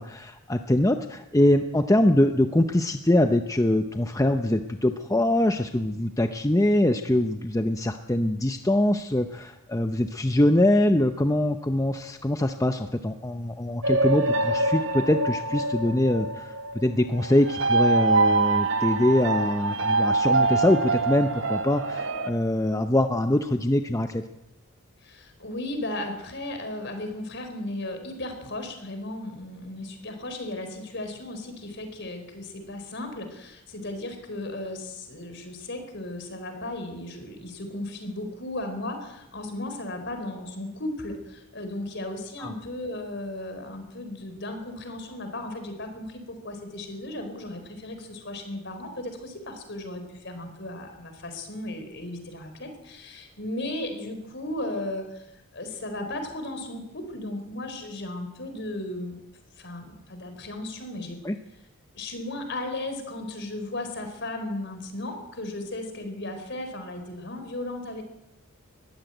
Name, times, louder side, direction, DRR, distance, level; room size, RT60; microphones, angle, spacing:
voice 1, 0.0-24.2 42.4-42.5 61.2-61.4, left 1 dB, 15° left, 7 dB, 0.7 m, -23 dB
sound 1, 13.8-22.3, right 3 dB, 60° right, 1.3 m, -25 dB
voice 2, 25.0-59.2 59.6-61.2 61.9-68.0, left 1 dB, 55° left, 7 dB, 4.5 m, -35 dB
21.0 x 15.0 x 9.1 m, 0.89 s
head